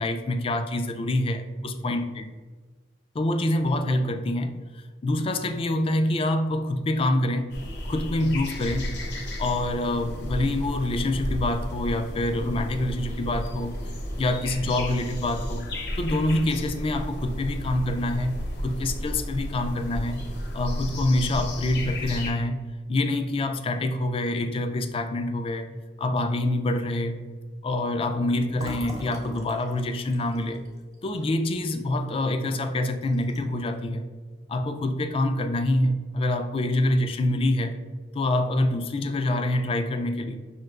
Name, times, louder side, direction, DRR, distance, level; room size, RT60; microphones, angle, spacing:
voice 1, 0.0-2.3 3.1-4.5 5.0-7.5 7.8-8.9 9.4-13.8 14.2-15.7 16.0-18.4 18.6-20.2 20.5-22.6 22.9-25.7 26.0-27.2 27.6-30.6 31.0-34.1 34.5-37.8 38.1-40.4, left 1 dB, 30° left, 7 dB, 0.3 m, -26 dB
sound 1, 7.5-22.3, equal, 65° left, 0.6 m, -33 dB
Fill (with liquid), 28.5-32.2 32.6-32.7 33.0-33.6, equal, 20° right, 0.7 m, -41 dB
5.6 x 2.8 x 2.3 m, 1.4 s
head